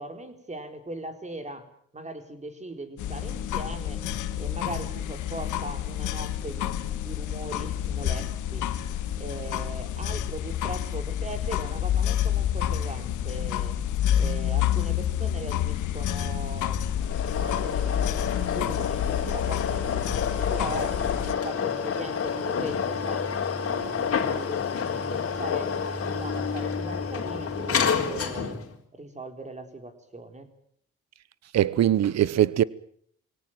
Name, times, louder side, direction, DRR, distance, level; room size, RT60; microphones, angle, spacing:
voice 1, 0.0-1.7 1.9-4.0 4.4-8.6 9.2-13.8 14.1-21.0 21.3-23.2 23.6-25.7 26.0-28.6 28.9-30.5, right 2 dB, 25° right, 4.2 m, -39 dB
sound 1, 3.0-21.3, left 10 dB, 80° left, 1.8 m, -29 dB
sound 2, 17.0-28.7, left 6 dB, 50° left, 3.9 m, -29 dB
voice 2, 31.5-32.6, right 11 dB, 60° right, 1.0 m, -21 dB
24.0 x 17.5 x 9.0 m
cardioid pair, 90°, 30 cm